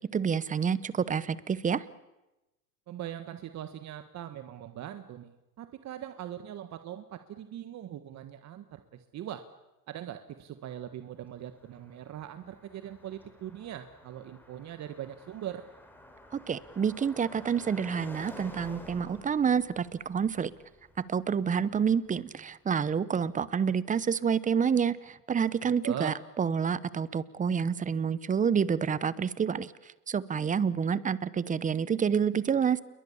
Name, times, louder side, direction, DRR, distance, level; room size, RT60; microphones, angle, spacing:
voice 1, 0.1-1.8 16.3-20.5 21.1-29.7 30.1-32.8, right 7 dB, 15° right, 18 dB, 0.9 m, -28 dB
voice 2, 2.9-9.4 9.9-15.6 25.6-26.2, right 11 dB, 35° right, 9 dB, 1.4 m, -41 dB
Car passing by, 10.9-22.9, left 1 dB, 5° left, 4.0 m, -51 dB
28.5 x 22.5 x 7.2 m, 1.0 s
supercardioid pair, 110°, 46 cm